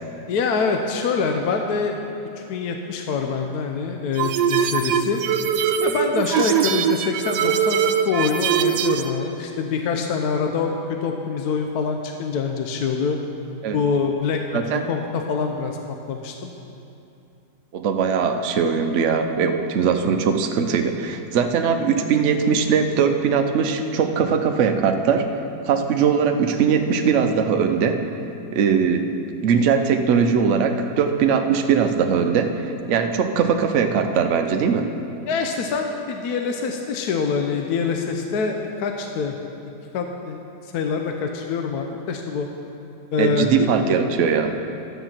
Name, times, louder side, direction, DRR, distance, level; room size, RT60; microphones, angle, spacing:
voice 1, 0.3-2.0 2.4-5.2 5.8-13.2 13.7-14.6 14.9-15.8 16.1-16.5 35.3-39.4 39.9-42.5 43.1-43.7, left 5 dB, 70° left, 3 dB, 1.1 m, -25 dB
sound 1, 4.2-9.1, right 8 dB, 80° right, 1.1 m, -22 dB
voice 2, 14.5-14.8 17.7-25.2 25.6-28.0 28.5-34.9 43.2-44.5, right 6 dB, 60° right, 5 dB, 0.9 m, -20 dB
11.5 x 8.0 x 5.9 m, 2.8 s
omnidirectional pair, 1.9 m